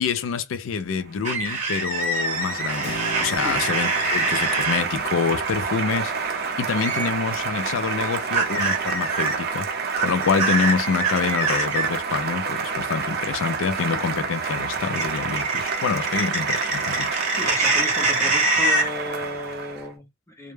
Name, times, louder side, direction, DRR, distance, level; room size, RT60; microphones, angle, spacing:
voice 1, 0.0-9.7 10.0-17.2, left 5 dB, 70° left, 0.4 m, -26 dB
Applause, 1.0-19.9, right 5 dB, 55° right, 0.5 m, -29 dB
sound 1, 1.3-4.8 6.8-7.1 8.3-9.4 9.9-11.9 15.0-18.9, right 3 dB, 35° right, 1.0 m, -24 dB
Keyboard (musical), 2.8-11.4, left 2 dB, 50° left, 0.7 m, -43 dB
voice 2, 17.3-20.5, left 1 dB, 15° left, 0.7 m, -34 dB
2.1 x 2.1 x 3.1 m
head